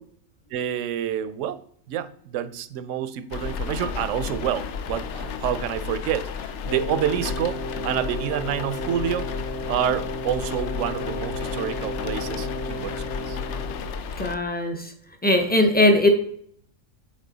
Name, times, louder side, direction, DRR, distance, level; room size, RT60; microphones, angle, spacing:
voice 1, 0.5-1.6 1.9-7.6 7.8-9.3 9.7-13.4, right 9 dB, 75° right, 13 dB, 0.9 m, -28 dB
sound 1, 3.3-14.4, left 6 dB, 65° left, 0.9 m, -33 dB
Wind instrument woodwind instrument, 6.6-14.0, left 1 dB, 40° left, 2.2 m, -34 dB
voice 2, 14.2-14.9 15.2-16.1, left 1 dB, 10° left, 5 dB, 0.6 m, -19 dB
7.5 x 4.3 x 3.9 m, 0.64 s
omnidirectional pair, 1.3 m